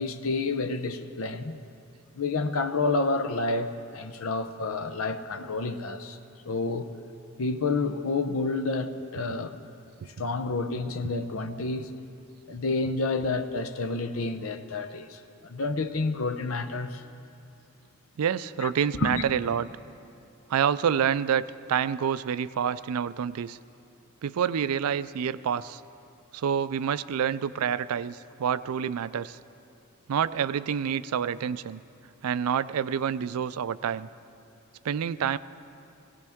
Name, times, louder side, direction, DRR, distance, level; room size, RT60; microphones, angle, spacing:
voice 1, 0.0-1.6 2.1-6.2 6.5-6.9 7.4-9.6 10.2-11.9 12.5-17.0 18.6-19.2, left 3 dB, 65° left, 0.7 m, -29 dB
voice 2, 18.2-19.7 20.5-23.6 24.2-25.8 26.3-29.4 30.1-31.8 32.2-34.1 34.8-35.4, right 8 dB, 85° right, 0.4 m, -27 dB
17.5 x 17.0 x 3.6 m
head